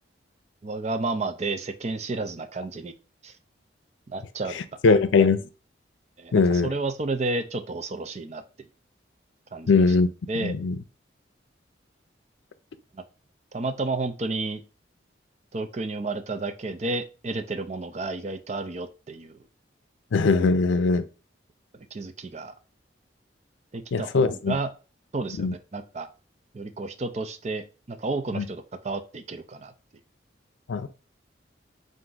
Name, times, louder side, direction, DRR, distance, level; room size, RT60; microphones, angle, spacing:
voice 1, 0.6-2.9 3.2-3.4 4.1-4.6 4.9-5.0 6.2-8.4 9.5-9.8 10.3-10.5 12.9-13.0 13.5-14.6 15.5-19.4 21.7-22.5 23.7-24.7 25.1-26.1 26.5-29.7, right 3 dB, 35° right, 0.4 m, -31 dB
voice 2, 4.8-5.4 6.3-6.7 9.7-10.1 10.4-10.8 20.1-21.0 23.9-24.5 25.4-25.5 28.4-28.5 30.7-30.9, left 4 dB, 80° left, 0.5 m, -20 dB
4.4 x 2.6 x 3.8 m
head